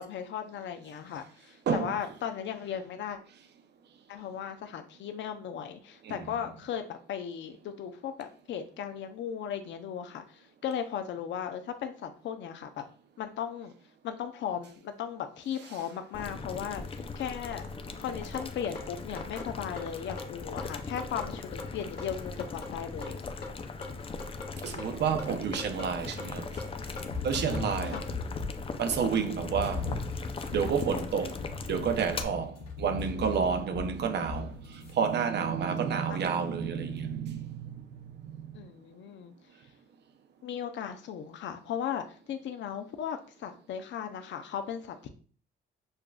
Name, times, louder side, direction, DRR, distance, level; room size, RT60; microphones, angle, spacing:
voice 1, 0.0-3.2 4.1-12.8 13.2-13.7 14.0-17.7 18.0-23.2 27.9-28.1 36.1-36.2 38.5-39.3 40.4-45.1, left 8 dB, 70° left, 0.6 m, -37 dB
voice 2, 1.7-2.0 6.0-6.2 24.6-26.5 27.2-28.1 28.8-29.9 30.5-31.4 31.7-37.9 38.2-38.5, right 6 dB, 60° right, 0.6 m, -30 dB
Boiling, 16.1-32.2, left 4 dB, 30° left, 0.4 m, -39 dB
sound 1, 18.3-28.1, left 2 dB, 50° left, 1.5 m, -43 dB
sound 2, 27.1-28.8 29.5-34.9, left 3 dB, 85° left, 1.0 m, -38 dB
6.5 x 2.4 x 2.3 m
cardioid pair, 90°, 20 cm